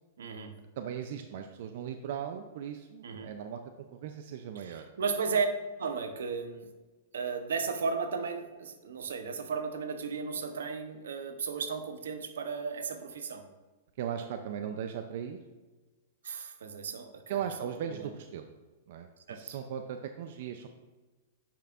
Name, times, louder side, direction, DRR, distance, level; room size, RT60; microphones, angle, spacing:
voice 1, 0.2-0.6 3.0-3.3 4.5-5.5 5.8-6.7 7.1-13.5 16.2-18.1 19.3-19.4, right 5 dB, 85° right, 8 dB, 0.8 m, -35 dB
voice 2, 0.8-3.6 3.9-4.9 14.0-15.4 17.3-18.5 18.9-20.7, right 8 dB, 60° right, 6 dB, 0.5 m, -38 dB
10.0 x 5.4 x 2.5 m, 1.2 s
hypercardioid pair, 135°, 0 cm